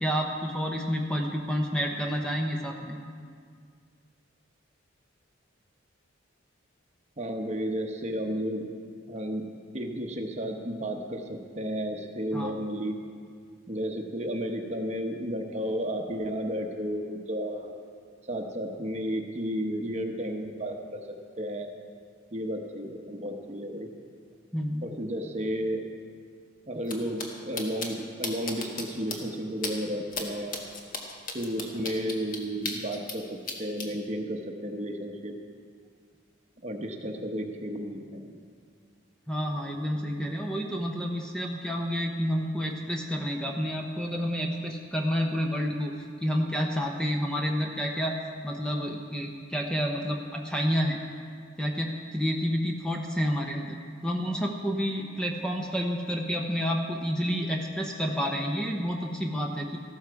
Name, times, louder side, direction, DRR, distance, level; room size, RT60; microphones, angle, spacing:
voice 1, 0.0-3.0 12.3-12.5 24.5-24.9 39.3-45.9 46.2-48.2 48.4-51.0 51.6-53.8 54.0-59.8, equal, 5° left, 1 dB, 0.8 m, -29 dB
voice 2, 7.2-8.6 9.1-9.5 9.7-13.0 13.7-17.7 18.3-20.8 21.4-21.7 22.3-23.9 24.8-25.8 26.7-30.6 31.3-35.3 36.6-38.4, equal, 35° right, 3 dB, 1.0 m, -32 dB
sound 1, 26.8-26.9 27.2-27.3 27.6-27.9 28.2-28.8 29.1-29.2 29.6-29.7 30.1-30.2 30.5-33.2 33.5-33.9, left 4 dB, 40° left, 1.4 m, -34 dB
14.5 x 13.0 x 4.7 m, 2.1 s
head